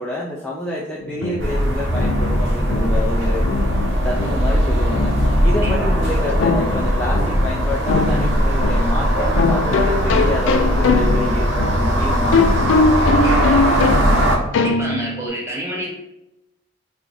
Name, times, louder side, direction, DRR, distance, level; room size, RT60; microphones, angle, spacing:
voice 1, 0.0-3.4 4.0-5.2 5.4-12.4 13.2-14.0, left 1 dB, 5° left, -5 dB, 0.3 m, -28 dB
sound 1, 1.0-15.3, left 4 dB, 85° left, 0.3 m, -22 dB
sound 2, 1.4-14.4, equal, 80° right, 0.8 m, -19 dB
voice 2, 14.5-15.9, right 1 dB, 15° right, -4 dB, 0.9 m, -28 dB
2.9 x 2.4 x 3.9 m, 0.90 s
head